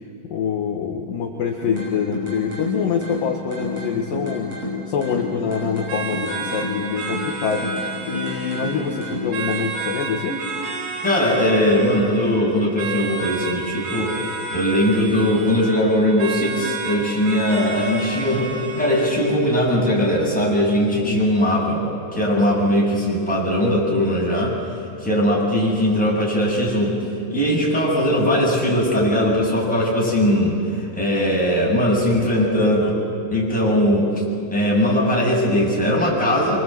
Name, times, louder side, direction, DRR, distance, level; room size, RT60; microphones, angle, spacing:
voice 1, 0.3-4.5 4.9-7.7 8.0-10.4 21.0-21.3, left 6 dB, 60° left, 0 dB, 2.9 m, -25 dB
sound 1, 1.6-9.6, left 2 dB, 35° right, 7.1 m, -31 dB
sound 2, 5.9-19.5, right 4 dB, 60° right, 4.8 m, -31 dB
voice 2, 11.0-21.8 22.1-24.5 25.0-27.0 27.3-33.0 33.3-34.2 34.5-36.6, equal, ahead, -5 dB, 7.4 m, -20 dB
26.0 x 24.5 x 8.0 m, 2.8 s
omnidirectional pair, 5.2 m